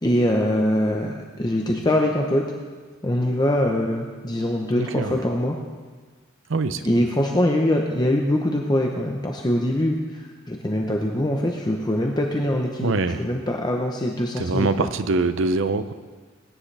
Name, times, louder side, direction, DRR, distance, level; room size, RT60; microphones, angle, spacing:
voice 1, 0.0-2.5 3.0-5.6 6.8-14.7, left 1 dB, 20° left, 1 dB, 0.8 m, -23 dB
voice 2, 4.8-5.2 6.5-7.0 12.8-13.3 14.4-15.9, right 3 dB, 65° right, 11 dB, 0.6 m, -24 dB
20.0 x 10.0 x 3.4 m, 1.5 s
head